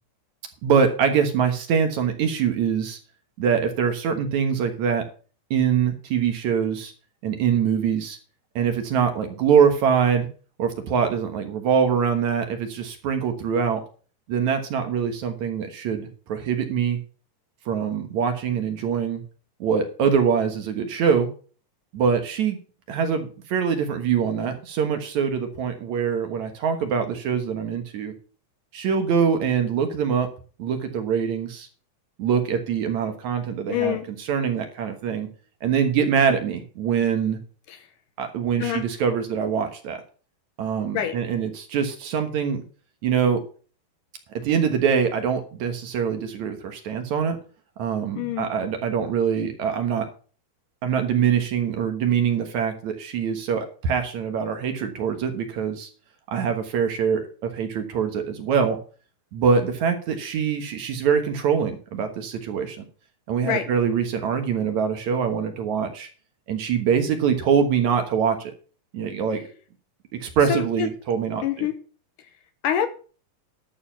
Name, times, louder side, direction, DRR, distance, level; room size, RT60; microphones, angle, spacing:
voice 1, 0.6-3.0 3.4-5.0 5.5-6.9 7.2-8.2 8.6-10.3 10.6-13.8 14.3-17.0 17.7-19.2 19.6-21.3 21.9-22.6 22.9-28.1 28.7-30.3 30.6-31.7 32.2-35.3 35.6-37.4 38.2-40.0 40.6-42.6 43.0-43.4 44.3-47.4 47.8-50.1 50.8-55.9 56.3-58.8 59.3-62.8 63.3-66.1 66.5-68.5 68.9-69.4 70.2-71.7, right 7 dB, 60° right, 6 dB, 2.4 m, -24 dB
voice 2, 33.7-34.1 37.7-37.8 38.6-38.9 40.9-41.2 48.2-48.5 63.4-63.7 70.5-70.9 71.4-71.8 72.6-72.9, left 10 dB, 70° left, 9 dB, 2.5 m, -25 dB
11.5 x 6.8 x 5.6 m, 0.39 s
omnidirectional pair, 4.1 m